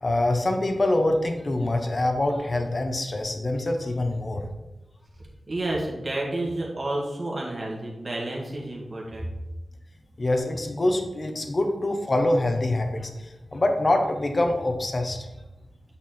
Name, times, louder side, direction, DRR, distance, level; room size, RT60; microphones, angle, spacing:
voice 1, 0.0-4.5 10.2-15.3, left 1 dB, 35° left, 5 dB, 0.8 m, -25 dB
voice 2, 5.5-9.3, right 1 dB, 35° right, -2 dB, 2.0 m, -30 dB
8.6 x 4.4 x 4.3 m, 1.0 s
wide cardioid pair, 115°, 0 cm